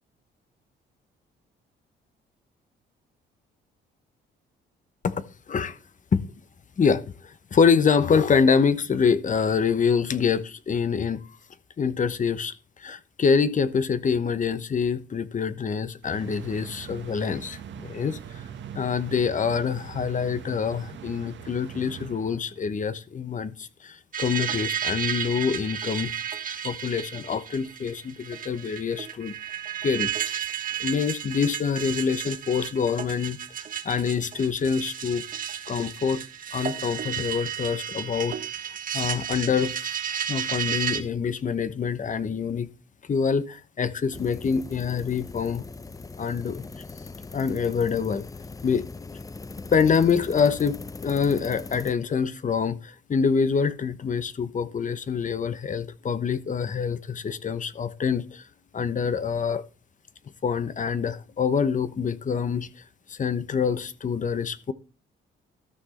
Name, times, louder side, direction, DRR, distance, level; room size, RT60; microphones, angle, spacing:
voice 1, 6.8-11.3 11.8-12.5 12.8-18.2 18.7-26.1 26.6-29.3 29.8-30.4 30.8-33.4 33.8-35.3 35.7-36.2 36.5-38.4 38.9-39.8 40.3-42.7 43.1-45.6 46.2-46.7 47.3-48.2 48.6-48.8 49.7-58.4 58.7-59.6 60.4-62.7 63.1-64.7, left 6 dB, 40° left, 1.1 m, -25 dB
sound 1, 16.0-22.7, right 8 dB, 65° right, 1.4 m, -42 dB
sound 2, 24.1-41.0, right 9 dB, 45° right, 1.4 m, -33 dB
sound 3, 44.1-51.9, left 3 dB, 15° left, 0.6 m, -40 dB
13.5 x 6.1 x 4.3 m
cardioid pair, 90°, 20 cm